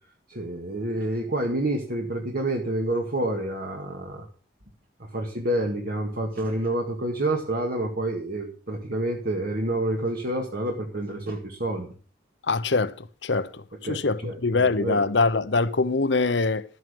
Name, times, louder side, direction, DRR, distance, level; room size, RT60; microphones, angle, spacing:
voice 1, 0.3-4.3 5.0-11.9 13.8-15.0, right 1 dB, 50° right, 1.9 m, -28 dB
voice 2, 12.4-16.6, left 3 dB, 65° left, 0.9 m, -24 dB
12.5 x 9.2 x 5.2 m
head